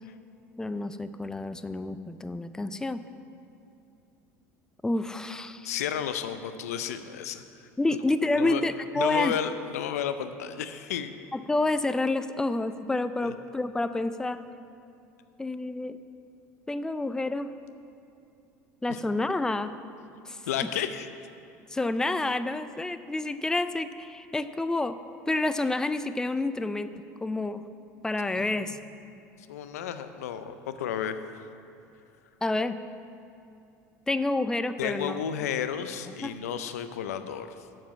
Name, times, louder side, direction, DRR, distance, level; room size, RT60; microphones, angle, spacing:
voice 1, 0.6-3.0 4.8-5.7 7.8-9.3 11.3-14.4 15.4-16.0 16.7-17.5 18.8-19.7 20.3-20.4 21.7-25.0 25.3-26.9 27.2-27.6 28.0-28.8 32.4-32.8 34.1-35.2 36.2-36.3, left 2 dB, 10° left, 12 dB, 0.4 m, -28 dB
voice 2, 5.6-7.4 8.4-8.6 9.0-11.2 13.2-13.3 18.9-19.0 20.5-21.1 28.3-28.8 29.5-31.2 34.8-37.5, left 9 dB, 85° left, 10 dB, 0.5 m, -32 dB
7.4 x 7.3 x 7.2 m, 2.7 s
hypercardioid pair, 85°, 8 cm